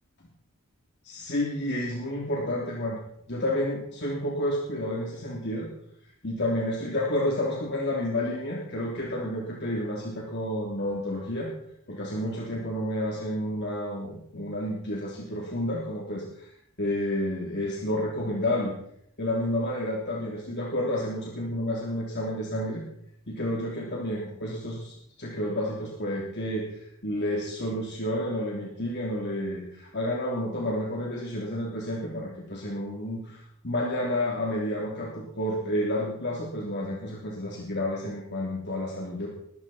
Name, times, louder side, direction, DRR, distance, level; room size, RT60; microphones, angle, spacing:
voice 1, 1.0-3.0 3.3-5.7 6.2-11.5 11.9-16.5 16.8-18.7 19.2-22.8 23.3-39.3, left 1 dB, 50° left, -2 dB, 3.2 m, -30 dB
21.5 x 14.0 x 4.4 m, 0.72 s
head